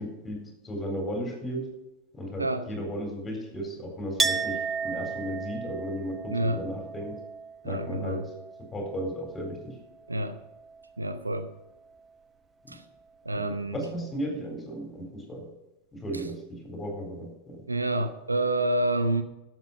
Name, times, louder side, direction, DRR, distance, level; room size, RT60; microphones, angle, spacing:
voice 1, 0.0-1.7 2.1-7.2 7.6-8.3 8.7-9.8 12.6-12.8 13.3-15.4 15.9-17.6, equal, 15° left, 2 dB, 4.1 m, -35 dB
voice 2, 2.4-2.7 6.3-6.6 7.6-8.3 10.1-10.4 11.0-11.5 12.7-12.8 13.2-13.8 16.1-16.2 17.7-19.2, right 1 dB, 80° right, 10 dB, 0.9 m, -28 dB
Chink clink, 4.2-9.7 10.0-10.9, right 5 dB, 15° right, 1.0 m, -34 dB
12.5 x 7.9 x 5.6 m, 0.98 s
figure-of-eight pair, 90°, 0 cm